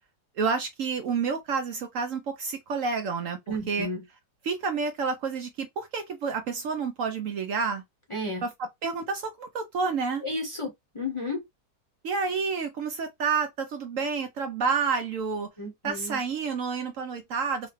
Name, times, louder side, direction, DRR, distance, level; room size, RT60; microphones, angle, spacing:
voice 1, 0.4-3.9 4.4-7.8 8.4-8.5 8.8-10.2 12.0-15.5 15.8-17.7, right 5 dB, 65° right, 0.9 m, -29 dB
voice 2, 3.5-4.0 8.1-8.4 10.2-11.4 15.6-16.2, left 1 dB, 25° left, 0.9 m, -32 dB
3.9 x 2.2 x 3.1 m
omnidirectional pair, 1.7 m